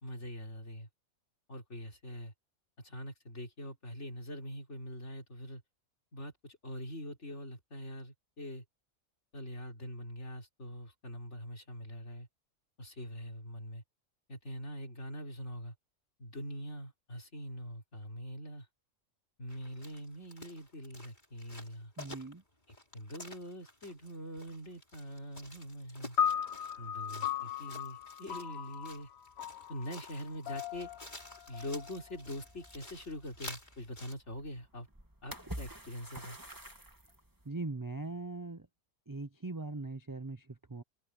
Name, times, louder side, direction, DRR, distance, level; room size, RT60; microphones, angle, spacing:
voice 1, 0.0-0.9 1.5-2.3 2.8-5.6 6.1-8.6 9.3-12.3 12.8-13.8 14.3-15.7 16.2-18.7 19.4-21.9 22.9-26.2 26.8-29.1 29.7-30.9 31.5-34.9 35.2-36.4, equal, 55° left, 4.0 m, -43 dB
sound 1, 19.5-34.1, left 1 dB, 35° left, 4.9 m, -51 dB
voice 2, 22.0-22.4 37.5-38.7 39.1-40.8, right 3 dB, 30° right, 0.4 m, -40 dB
sound 2, 26.2-32.6, left 8 dB, 90° left, 1.6 m, -37 dB
sound 3, 30.7-37.4, right 1 dB, 15° right, 2.4 m, -50 dB
omnidirectional pair, 1.4 m